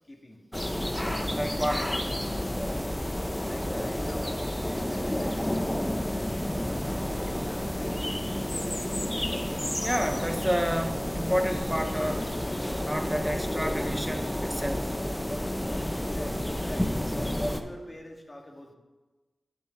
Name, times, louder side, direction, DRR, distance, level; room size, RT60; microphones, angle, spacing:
voice 1, 0.1-0.4 3.4-8.6 15.9-18.7, left 1 dB, 35° left, 1 dB, 2.1 m, -47 dB
sound 1, 0.5-17.6, left 1 dB, 15° left, 0.9 m, -30 dB
voice 2, 1.3-2.0 9.8-12.3 12.8-15.0, equal, 5° right, 5 dB, 1.3 m, -30 dB
10.5 x 9.4 x 3.9 m, 1.2 s
cardioid pair, 45°, 0 cm